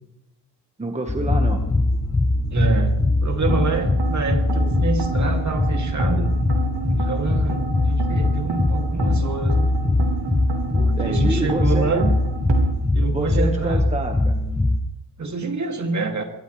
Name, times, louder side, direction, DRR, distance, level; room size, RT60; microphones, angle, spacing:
voice 1, 0.8-1.6 11.0-12.0 13.1-14.4, right 2 dB, 15° right, 3 dB, 1.5 m, -27 dB
sound 1, 1.1-14.8, left 2 dB, 10° left, 0.8 m, -21 dB
voice 2, 2.5-6.4 6.8-9.7 10.7-12.2 12.9-13.9 15.2-16.2, right 3 dB, 40° right, 3 dB, 2.7 m, -26 dB
sound 2, 3.4-12.7, right 4 dB, 70° right, 2.4 m, -31 dB
22.0 x 18.5 x 3.4 m, 0.88 s
cardioid pair, 110°, 43 cm